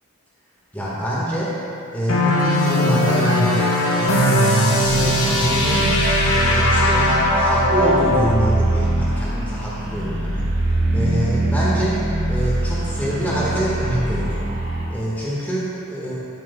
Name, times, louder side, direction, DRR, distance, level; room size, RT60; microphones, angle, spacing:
voice 1, 0.7-1.5 1.9-3.5 4.0-5.9 6.3-10.5 10.9-11.9 12.3-14.5 14.9-16.2, right 1 dB, 10° left, -8 dB, 1.7 m, -25 dB
sound 1, 2.1-8.3, left 1 dB, 75° left, 1.2 m, -19 dB
sound 2, 4.8-14.9, right 1 dB, 45° right, 1.5 m, -23 dB
12.5 x 9.2 x 2.4 m, 2.8 s
head